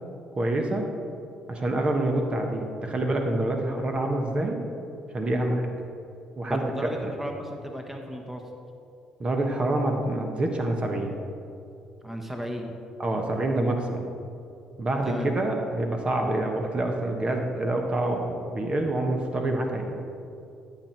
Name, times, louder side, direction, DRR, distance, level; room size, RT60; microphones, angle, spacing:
voice 1, 0.4-0.8 1.5-4.6 5.1-5.7 6.4-7.1 9.2-11.2 13.0-14.1 14.8-20.0, right 1 dB, 35° right, 3 dB, 1.3 m, -27 dB
voice 2, 6.5-8.4 12.0-12.7 15.0-15.3, equal, 10° right, 3 dB, 1.2 m, -34 dB
13.0 x 5.9 x 4.5 m, 2.6 s
hypercardioid pair, 50°, 3 cm